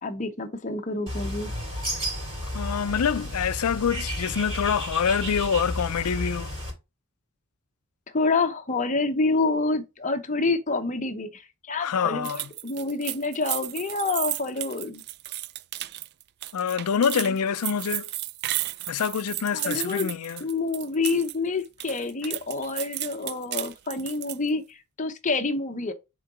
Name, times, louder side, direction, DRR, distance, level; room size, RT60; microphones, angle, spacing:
voice 1, 0.0-1.5 8.1-15.0 19.5-20.1 20.4-25.9, left 3 dB, 35° left, 0.9 m, -27 dB
Bird, 1.1-6.7, equal, 25° right, 3.4 m, -32 dB
voice 2, 2.5-6.5 11.8-12.5 16.5-18.1 18.9-20.4, left 7 dB, 85° left, 0.5 m, -26 dB
sound 1, 12.2-21.4 21.6-24.5, right 15 dB, 50° right, 0.3 m, -34 dB
6.4 x 3.9 x 4.9 m
head